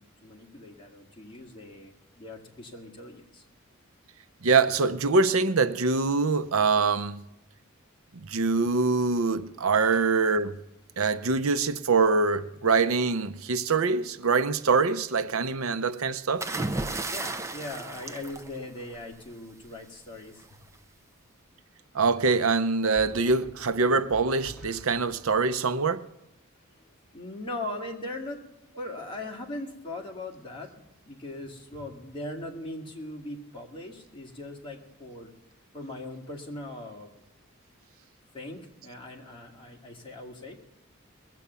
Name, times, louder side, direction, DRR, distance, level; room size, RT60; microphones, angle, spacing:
voice 1, 0.0-3.4 17.1-20.6 27.1-28.4 28.8-30.7 31.1-35.3 35.7-37.1 38.3-40.6, left 1 dB, 25° left, 2.2 m, -40 dB
voice 2, 4.4-7.2 8.2-10.6 11.0-16.5 21.9-26.1, right 4 dB, 75° right, 0.7 m, -24 dB
sound 1, 16.4-19.2 20.4-20.7, right 2 dB, 15° right, 0.6 m, -33 dB
sound 2, 20.3-20.7 22.9-25.6, right 1 dB, 5° left, 3.7 m, -48 dB
20.5 x 7.7 x 6.9 m
head